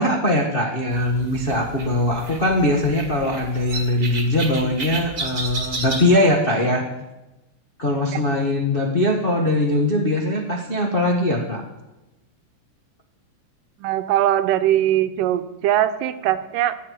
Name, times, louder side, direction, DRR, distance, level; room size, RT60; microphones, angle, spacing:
voice 1, 0.0-6.9 7.8-11.6, left 1 dB, 80° left, -1 dB, 0.5 m, -21 dB
sound 1, 0.9-6.2, right 3 dB, 30° right, 1.7 m, -32 dB
voice 2, 13.8-16.7, right 12 dB, 85° right, 11 dB, 2.4 m, -21 dB
14.5 x 8.4 x 8.4 m, 1.0 s
omnidirectional pair, 3.8 m